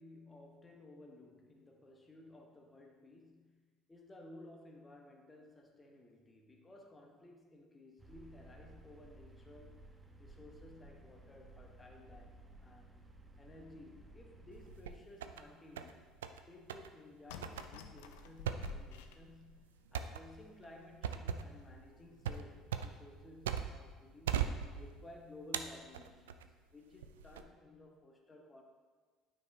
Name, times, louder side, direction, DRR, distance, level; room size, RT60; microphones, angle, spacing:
voice 1, 0.0-3.6 3.9-12.9 13.4-16.0 16.5-28.6, left 2 dB, 20° left, 2 dB, 1.1 m, -56 dB
sound 1, 8.0-14.8, right 2 dB, 15° right, 0.9 m, -57 dB
sound 2, 14.5-15.4 15.8-16.4 16.7-16.9 17.4-23.9 24.3-25.1 25.5-26.5 27.0-27.4, right 8 dB, 85° right, 0.3 m, -39 dB
sound 3, 17.3-19.8 20.4-20.5 20.8-20.9 21.5-21.8 22.2-22.4, left 5 dB, 75° left, 0.4 m, -51 dB
9.5 x 4.9 x 2.7 m, 1.4 s
hypercardioid pair, 65°, 0 cm